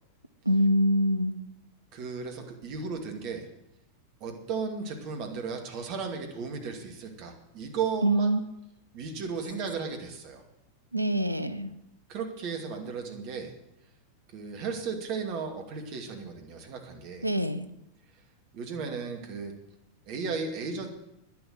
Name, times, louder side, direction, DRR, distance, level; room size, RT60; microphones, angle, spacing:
voice 1, 0.5-1.4 8.0-8.4 10.9-11.7 17.2-17.7, right 1 dB, 85° right, 12 dB, 0.7 m, -24 dB
voice 2, 1.9-3.5 4.2-8.4 8.9-10.4 12.1-13.5 14.3-17.3 18.5-19.6 20.1-20.9, right 5 dB, 45° right, 4 dB, 2.4 m, -35 dB
10.5 x 10.5 x 7.8 m, 0.83 s
figure-of-eight pair, 90°, 0 cm